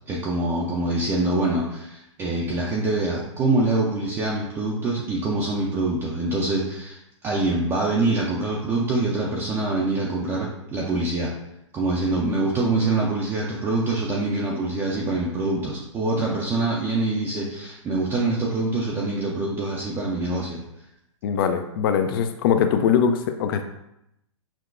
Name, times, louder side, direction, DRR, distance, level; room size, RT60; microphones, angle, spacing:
voice 1, 0.1-11.3 11.7-20.6, right 2 dB, 15° right, -4 dB, 0.4 m, -25 dB
voice 2, 21.2-23.6, left 7 dB, 45° left, 8 dB, 0.4 m, -21 dB
5.8 x 2.1 x 2.5 m, 0.84 s
hypercardioid pair, 130°, 16 cm